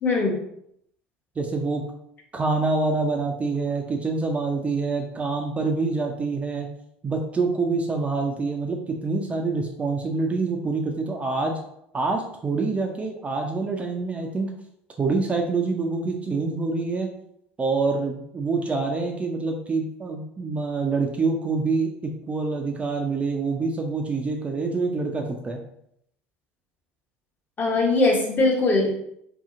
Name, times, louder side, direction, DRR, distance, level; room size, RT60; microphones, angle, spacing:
voice 1, 0.0-0.4 27.6-28.9, left 2 dB, 30° left, -2 dB, 0.9 m, -21 dB
voice 2, 1.4-1.9 2.3-6.7 7.0-11.5 11.9-14.5 15.0-17.1 17.6-21.9 22.3-25.6, right 3 dB, 25° right, 2 dB, 0.4 m, -26 dB
2.7 x 2.7 x 2.4 m, 0.74 s
hypercardioid pair, 75°, 6 cm